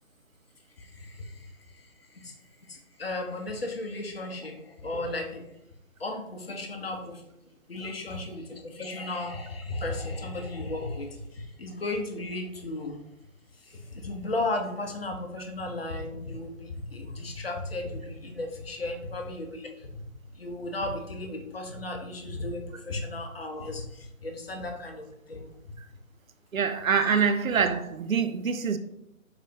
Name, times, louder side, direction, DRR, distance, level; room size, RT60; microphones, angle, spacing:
voice 1, 0.8-1.5 1.7-1.9 2.2-2.3 2.7-5.4 6.0-7.2 7.7-13.0 13.7-19.7 20.3-25.5, left 2 dB, 45° left, 0.6 m, -35 dB
voice 2, 26.5-28.8, right 6 dB, 75° right, 0.5 m, -25 dB
3.9 x 3.2 x 2.7 m
figure-of-eight pair, 145°, 41 cm